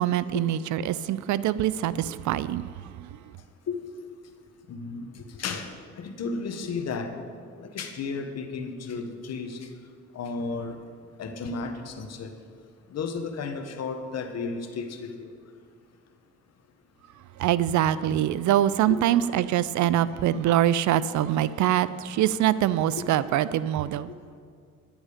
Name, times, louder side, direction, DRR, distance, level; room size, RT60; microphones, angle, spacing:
voice 1, 0.0-3.1 17.4-24.1, right 12 dB, 70° right, 0.4 m, -24 dB
voice 2, 4.7-7.1 7.6-9.7 10.1-10.8 11.2-12.3 12.9-15.3 18.9-19.0, left 4 dB, 55° left, 1.2 m, -33 dB
10.0 x 9.0 x 5.0 m
cardioid pair, 90°, 30 cm